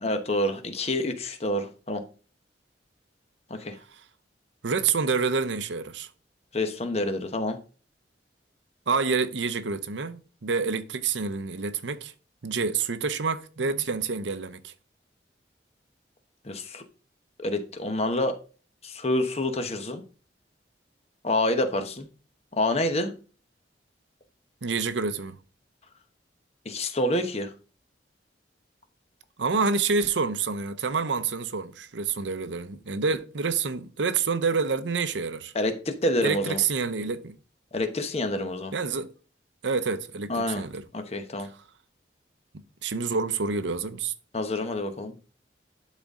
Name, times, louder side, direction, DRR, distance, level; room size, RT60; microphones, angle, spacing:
voice 1, 0.0-2.0 3.5-3.8 6.5-7.6 16.4-16.8 17.4-18.4 18.8-20.0 21.2-22.1 22.6-23.1 26.6-27.5 35.5-36.6 37.7-38.7 40.3-40.6 40.9-41.5 44.3-45.2, left 1 dB, 35° left, 1.0 m, -27 dB
voice 2, 4.6-6.1 8.9-12.1 12.4-14.7 24.6-25.4 29.4-35.5 36.2-37.3 38.7-39.1 39.6-40.8 41.4-41.5 42.5-44.1, right 4 dB, 85° right, 0.7 m, -28 dB
11.5 x 4.1 x 3.7 m
head